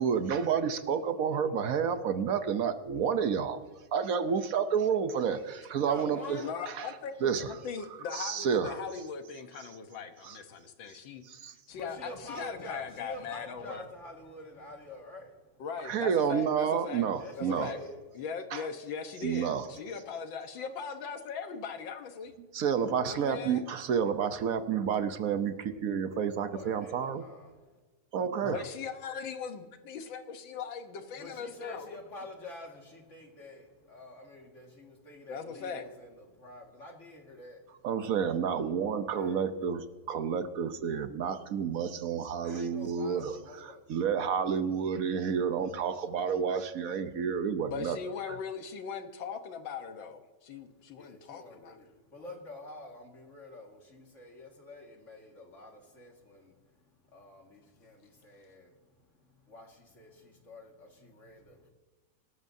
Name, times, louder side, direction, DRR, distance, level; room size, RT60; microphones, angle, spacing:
voice 1, 0.0-3.6 3.9-6.9 7.2-7.6 8.1-8.8 10.2-10.4 11.3-11.5 15.8-17.7 18.5-18.6 19.2-19.7 22.5-27.2 28.1-28.6 37.8-48.0 48.3-48.4, right 7 dB, 65° right, 9 dB, 0.9 m, -30 dB
voice 2, 5.8-6.5 11.7-15.6 16.1-16.7 17.2-18.0 26.4-27.7 31.1-37.9 39.1-39.5 42.4-43.9 50.6-50.7 50.9-61.7, left 1 dB, 35° left, 1 dB, 2.1 m, -48 dB
voice 3, 6.4-7.1 7.5-11.2 11.7-13.9 15.6-17.1 17.4-17.8 18.1-22.3 23.0-23.6 28.4-32.0 35.3-35.9 47.7-51.8, left 6 dB, 70° left, 7 dB, 1.8 m, -39 dB
25.0 x 12.5 x 2.7 m, 1.3 s
omnidirectional pair, 2.3 m